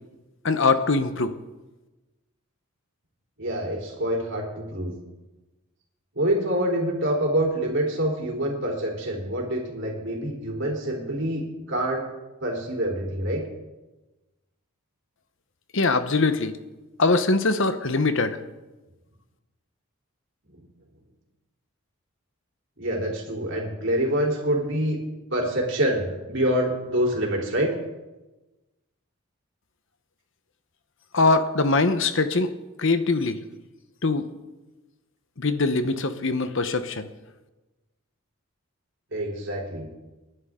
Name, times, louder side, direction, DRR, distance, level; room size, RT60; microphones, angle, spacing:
voice 1, 0.4-1.3 15.7-16.5 17.0-18.4 31.1-32.5 32.8-33.4 34.0-34.3 35.4-37.1, left 3 dB, 60° left, 10 dB, 1.0 m, -22 dB
voice 2, 3.4-4.9 6.2-12.1 12.4-13.4 22.8-25.0 25.3-27.7 39.1-39.9, right 1 dB, 55° right, -1 dB, 3.7 m, -26 dB
29.0 x 11.0 x 3.8 m, 1.1 s
head